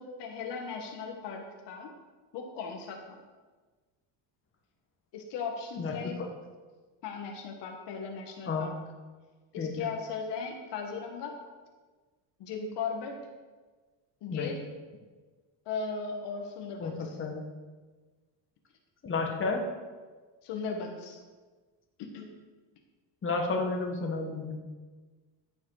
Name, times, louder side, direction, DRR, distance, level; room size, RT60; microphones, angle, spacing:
voice 1, 0.0-1.9 2.3-3.2 5.1-6.2 7.0-8.8 9.5-11.4 12.4-13.2 14.2-14.7 15.7-17.2 20.4-21.2 22.0-22.3, left 5 dB, 65° left, 3 dB, 1.6 m, -37 dB
voice 2, 5.8-6.3 8.5-8.7 9.6-9.7 14.3-14.6 16.8-17.4 19.0-19.6 23.2-24.6, left 3 dB, 25° left, 1 dB, 1.7 m, -31 dB
14.5 x 6.3 x 4.9 m, 1.3 s
cardioid pair, 135°, 45 cm